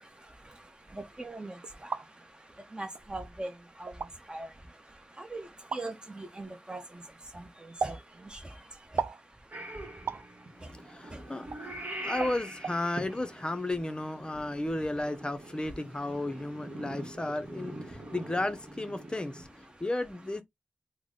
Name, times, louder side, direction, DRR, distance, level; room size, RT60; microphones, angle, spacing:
voice 1, 0.0-12.1 16.0-16.1 16.7-16.8 17.9-18.1 19.7-19.8, right 2 dB, 20° right, 0.9 m, -44 dB
sound 1, 1.6-2.1 3.0-3.1 3.9-4.1 5.7-5.8 7.8-8.0 9.0-9.2 10.1-10.3 11.5-11.6 12.2-12.4 12.6-12.8, right 5 dB, 80° right, 0.4 m, -33 dB
Purr / Meow, 9.5-19.4, right 1 dB, 45° right, 1.2 m, -44 dB
voice 2, 10.5-20.4, left 2 dB, 25° left, 0.6 m, -34 dB
3.8 x 2.1 x 3.7 m
wide cardioid pair, 90°, 4 cm